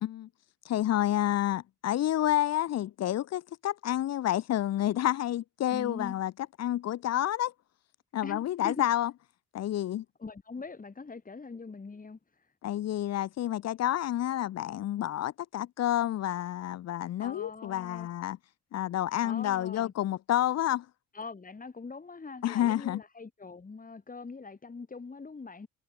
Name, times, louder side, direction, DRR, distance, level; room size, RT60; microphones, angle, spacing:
voice 1, 0.7-6.3 6.6-7.5 8.1-9.1 9.5-10.0 12.6-18.4 18.7-20.9 22.4-23.0, left 12 dB, 60° left, 0.7 m, -29 dB
voice 2, 5.7-6.2 8.2-8.8 10.2-12.5 17.2-18.1 19.2-19.9 21.1-25.7, left 4 dB, 25° left, 5.0 m, -42 dB
cardioid pair, 90°, 30 cm